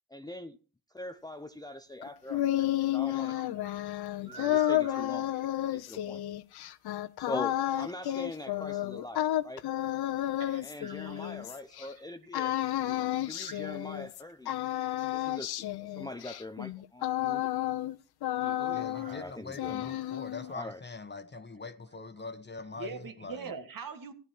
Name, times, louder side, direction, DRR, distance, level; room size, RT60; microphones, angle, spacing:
voice 1, 0.1-0.6 0.9-3.6 4.2-5.3 5.7-6.2 7.2-9.6 10.6-12.5 13.1-14.5 15.1-17.5 19.1-19.9 20.5-20.9, left 1 dB, 10° left, 0.7 m, -42 dB
sound 1, 2.0-11.9 12.3-14.2 14.5-18.0 18.2-19.2 19.5-20.5, left 13 dB, 70° left, 0.7 m, -31 dB
voice 2, 2.6-3.7 4.3-5.0 10.4-11.3 11.8-13.6 18.4-19.2 20.0-20.1 20.4-20.7 21.3-21.4 22.2-22.3 22.7-24.1, right 5 dB, 55° right, 1.7 m, -46 dB
voice 3, 18.7-23.5, left 4 dB, 25° left, 1.3 m, -43 dB
14.0 x 9.1 x 4.4 m
cardioid pair, 65°, 40 cm